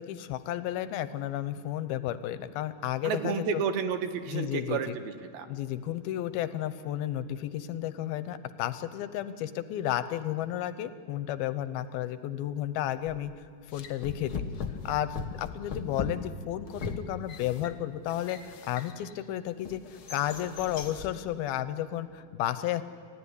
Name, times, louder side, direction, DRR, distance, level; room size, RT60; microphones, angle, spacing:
voice 1, 0.0-3.6 4.3-5.0 5.5-13.3 13.7-14.3 14.8-19.8 20.1-22.8, left 12 dB, 85° left, 12 dB, 2.8 m, -32 dB
voice 2, 3.0-5.5, right 6 dB, 80° right, 8 dB, 3.2 m, -31 dB
sound 1, 13.1-13.3 13.7-19.2 19.6-21.2, left 5 dB, 60° left, 1.4 m, -39 dB
30.0 x 16.0 x 10.0 m, 2.3 s
omnidirectional pair, 4.3 m